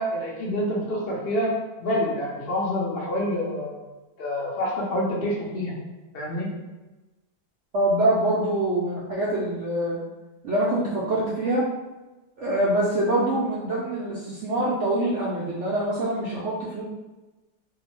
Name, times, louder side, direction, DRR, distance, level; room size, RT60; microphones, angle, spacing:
voice 1, 0.0-1.5 1.8-3.9 4.2-5.7 6.1-6.5, left 1 dB, 55° left, -5 dB, 0.6 m, -27 dB
voice 2, 7.7-10.0 10.4-11.6 12.4-16.8, right 1 dB, 80° right, -7 dB, 0.6 m, -24 dB
2.7 x 2.0 x 3.0 m, 1.1 s
omnidirectional pair, 1.8 m